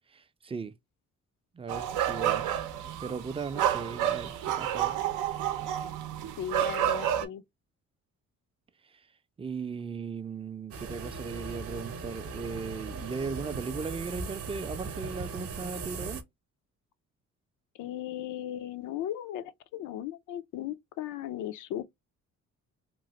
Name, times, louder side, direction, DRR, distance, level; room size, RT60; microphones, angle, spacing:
voice 1, 0.1-0.7 1.5-2.4 3.0-4.9 9.4-16.2, right 5 dB, 20° right, 0.4 m, -37 dB
sound 1, 1.7-7.3, right 11 dB, 85° right, 0.6 m, -30 dB
voice 2, 6.4-7.4 17.7-21.8, left 11 dB, 85° left, 0.5 m, -37 dB
sound 2, 10.7-16.2, right 4 dB, 50° right, 0.7 m, -39 dB
3.0 x 2.4 x 2.8 m
cardioid pair, 90°, 30 cm